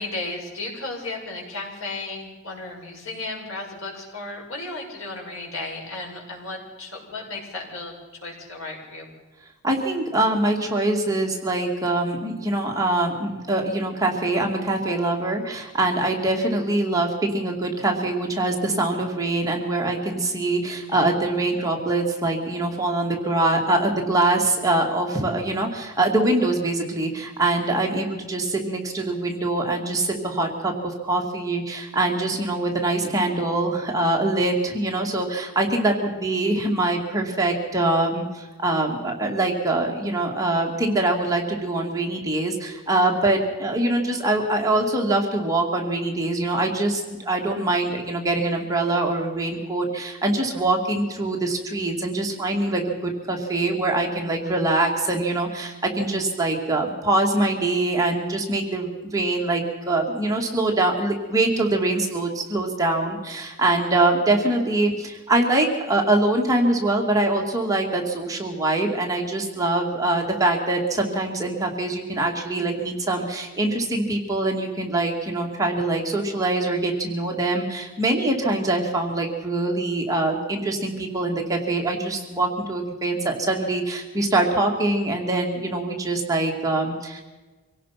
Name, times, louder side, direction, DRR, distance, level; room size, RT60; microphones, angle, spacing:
voice 1, 0.0-7.9 8.2-9.1, left 2 dB, 70° left, -1 dB, 6.7 m, -34 dB
voice 2, 9.6-87.2, right 2 dB, 15° right, 0 dB, 2.4 m, -24 dB
25.5 x 17.0 x 5.9 m, 1.2 s
head